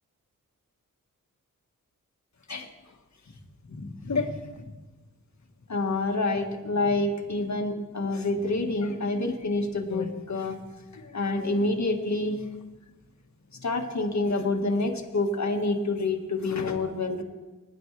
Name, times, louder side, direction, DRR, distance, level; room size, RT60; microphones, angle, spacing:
voice 1, 3.7-4.7 5.7-10.6 10.9-12.4 13.6-17.2, left 2 dB, 55° left, 2 dB, 1.7 m, -28 dB
19.5 x 10.5 x 3.3 m, 1.2 s
cardioid pair, 55°, 33 cm